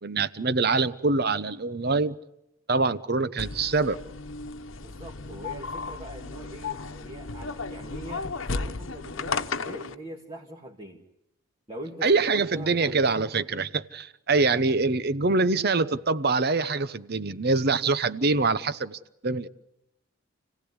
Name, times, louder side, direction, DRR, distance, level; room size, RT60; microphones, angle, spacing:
voice 1, 0.0-2.2 2.7-4.0 12.0-19.5, right 3 dB, 50° right, 0.9 m, -24 dB
sound 1, 3.4-9.9, left 4 dB, 70° left, 1.1 m, -34 dB
voice 2, 4.8-11.0 11.7-13.0, right 1 dB, 25° right, 2.0 m, -42 dB
29.5 x 17.0 x 9.7 m
head